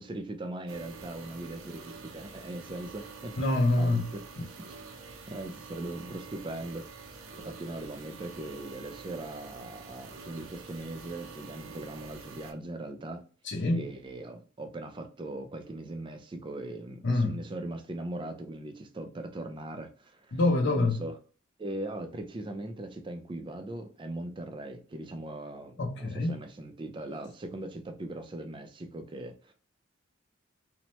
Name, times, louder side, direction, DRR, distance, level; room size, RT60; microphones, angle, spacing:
voice 1, 0.0-3.4 3.8-4.2 4.6-4.8 5.3-6.8 7.4-13.2 13.7-20.4 20.7-21.2 21.6-29.5, right 1 dB, 25° right, 0.4 m, -40 dB
sound 1, 0.7-12.5, right 4 dB, 85° right, 0.6 m, -47 dB
voice 2, 3.4-4.1 13.5-13.9 17.0-17.4 20.3-21.0 25.8-26.4, left 2 dB, 60° left, 0.6 m, -26 dB
2.9 x 2.1 x 2.9 m
head